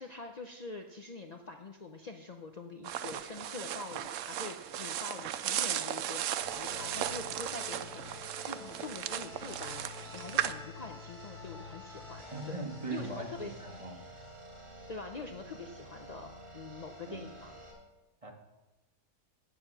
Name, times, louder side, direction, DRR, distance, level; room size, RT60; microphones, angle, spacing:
voice 1, 0.0-8.1 8.3-14.1 14.9-17.5, left 3 dB, 65° left, 4 dB, 0.4 m, -45 dB
sound 1, 2.8-10.5, right 11 dB, 70° right, 0.8 m, -36 dB
sound 2, 6.4-17.7, left 1 dB, 55° right, 3.4 m, -48 dB
voice 2, 12.3-14.1 17.1-17.3 18.2-18.3, right 3 dB, 20° right, 1 dB, 1.4 m, -40 dB
9.1 x 7.2 x 6.8 m, 1.1 s
omnidirectional pair, 1.7 m